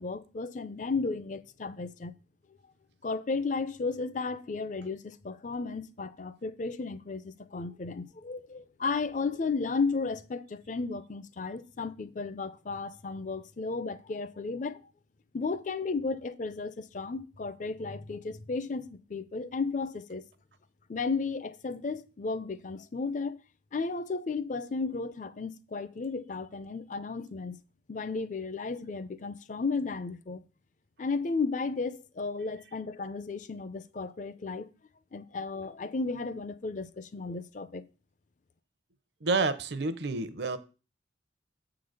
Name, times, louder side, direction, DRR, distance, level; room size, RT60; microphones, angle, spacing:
voice 1, 0.0-2.1 3.0-14.8 15.3-20.2 20.9-23.4 23.7-27.6 27.9-30.4 31.0-34.7 35.1-37.8, left 4 dB, 40° left, 0.5 m, -34 dB
voice 2, 39.2-40.6, right 3 dB, 60° right, 0.7 m, -29 dB
7.4 x 3.9 x 6.5 m
head